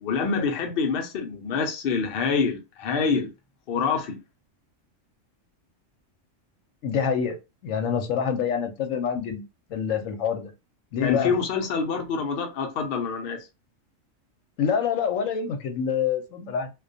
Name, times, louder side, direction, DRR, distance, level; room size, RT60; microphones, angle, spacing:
voice 1, 0.0-3.3 3.7-4.2 11.0-13.4, left 5 dB, 55° left, 0.7 m, -26 dB
voice 2, 6.8-7.4 7.6-9.4 9.7-10.5 10.9-11.3 14.6-16.7, left 7 dB, 80° left, 1.0 m, -26 dB
2.3 x 2.2 x 2.6 m
omnidirectional pair, 1.3 m